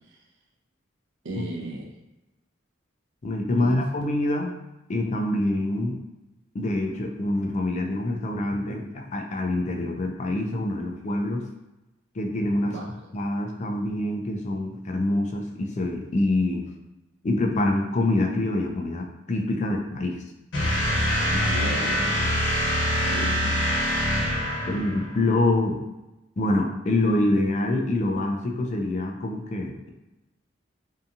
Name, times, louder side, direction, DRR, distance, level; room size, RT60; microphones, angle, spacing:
voice 1, 1.2-1.9 3.6-3.8 12.6-12.8 21.3-22.4 23.0-23.6, right 1 dB, 65° right, -1 dB, 0.5 m, -34 dB
voice 2, 3.2-4.6 4.9-6.0 6.5-11.4 12.2-12.7 13.1-16.6 17.2-20.2 24.7-25.8 26.4-29.9, left 2 dB, 40° left, 2 dB, 0.4 m, -25 dB
sound 1, 20.5-25.2, equal, 90° left, 1.0 m, -24 dB
2.7 x 2.3 x 2.5 m, 0.99 s
head